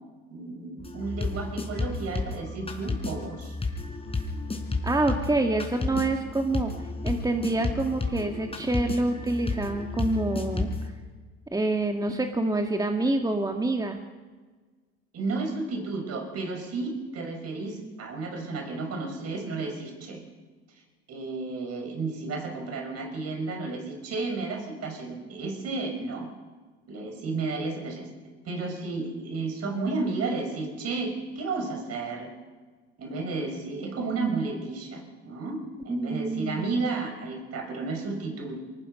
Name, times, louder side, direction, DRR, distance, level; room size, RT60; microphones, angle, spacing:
voice 1, 0.3-3.6 5.1-5.2 15.1-20.2 21.1-26.3 26.9-28.1 28.4-32.3 33.0-38.6, right 3 dB, 50° right, 3 dB, 6.4 m, -32 dB
sound 1, 0.8-10.9, left 3 dB, 20° left, 4.4 m, -32 dB
voice 2, 4.8-6.7 7.0-10.9 11.5-14.0 35.9-36.7, right 2 dB, 10° right, 4 dB, 1.9 m, -27 dB
23.5 x 20.0 x 5.6 m, 1.4 s
hypercardioid pair, 75°, 32 cm